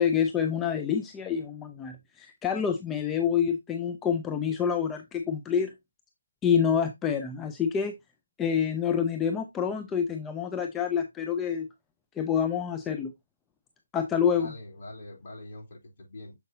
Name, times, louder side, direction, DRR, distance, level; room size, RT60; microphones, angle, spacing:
voice 1, 0.0-5.7 6.4-7.9 8.4-11.7 12.2-13.1 13.9-14.5, left 7 dB, 10° left, 0.5 m, -27 dB
voice 2, 14.3-16.3, left 1 dB, 40° left, 3.2 m, -44 dB
7.0 x 5.2 x 2.7 m
figure-of-eight pair, 155°, 0 cm